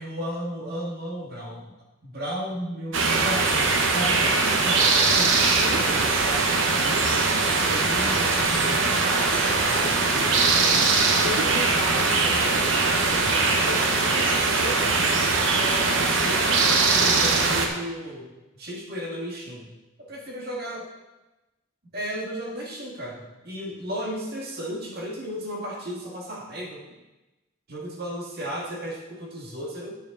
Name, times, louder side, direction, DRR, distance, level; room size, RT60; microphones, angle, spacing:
voice 1, 0.0-1.6 2.0-4.9 5.1-7.3 7.7-10.8 11.2-13.3 13.6-15.1 15.6-18.3 18.5-19.7 20.0-20.9 21.9-26.8 27.7-30.0, equal, 50° right, -2 dB, 1.8 m, -35 dB
sound 1, 2.9-17.7, right 3 dB, 75° right, 1.0 m, -21 dB
9.1 x 6.8 x 3.9 m, 1.0 s
head